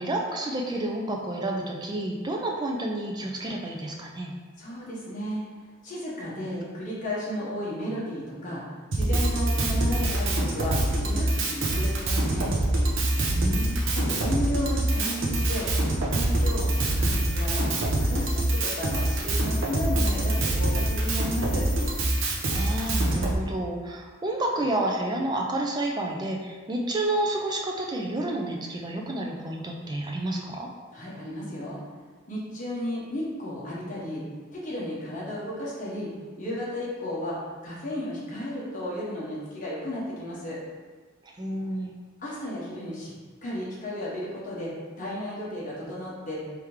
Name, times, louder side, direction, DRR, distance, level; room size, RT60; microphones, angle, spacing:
voice 1, 0.0-4.4 13.3-13.9 22.5-30.7 41.2-41.9, right 1 dB, 20° right, 0 dB, 0.4 m, -30 dB
voice 2, 4.6-5.4 5.8-8.6 8.9-12.6 13.9-15.7 16.1-17.7 18.0-21.7 30.9-31.8 32.3-34.2 34.5-36.1 36.4-37.4 37.6-40.6 42.2-43.1 43.4-46.4, left 1 dB, 40° left, -7 dB, 1.1 m, -33 dB
Drum kit, 8.9-23.3, right 1 dB, 70° right, 0.7 m, -25 dB
sound 1, 16.1-23.1, equal, 5° right, 1.2 m, -42 dB
3.5 x 3.4 x 3.1 m, 1.5 s
head